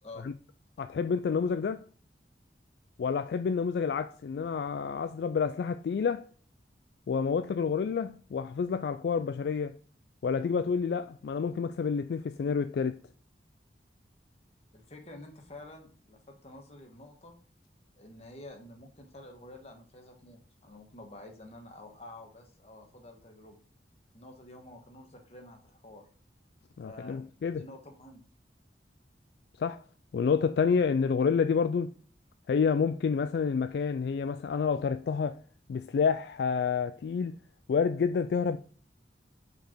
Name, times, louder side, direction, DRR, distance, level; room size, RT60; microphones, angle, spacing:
voice 1, 0.8-1.8 3.0-6.3 7.1-9.7 10.2-13.0 26.8-27.6 29.6-29.8 30.1-31.9 32.5-35.4 35.7-37.4 37.7-38.6, left 6 dB, 65° left, 0.3 m, -29 dB
voice 2, 14.7-17.3 17.9-23.6 24.1-26.0 26.8-28.2, left 1 dB, 35° left, 1.4 m, -49 dB
5.2 x 4.6 x 4.4 m
head